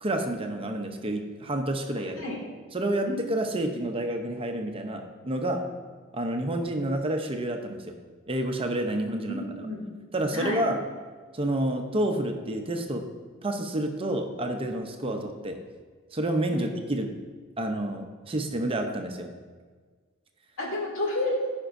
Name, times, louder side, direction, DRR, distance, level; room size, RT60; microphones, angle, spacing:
voice 1, 0.0-2.2 2.7-5.7 6.1-7.9 8.3-9.4 10.1-10.8 11.3-13.0 13.4-15.6 16.1-17.1 17.6-19.3, right 1 dB, 25° right, 4 dB, 0.6 m, -29 dB
voice 2, 9.3-9.9 10.3-10.6 16.5-16.7 20.6-21.5, left 1 dB, 75° left, -3 dB, 2.1 m, -30 dB
14.5 x 5.2 x 2.6 m, 1.5 s
head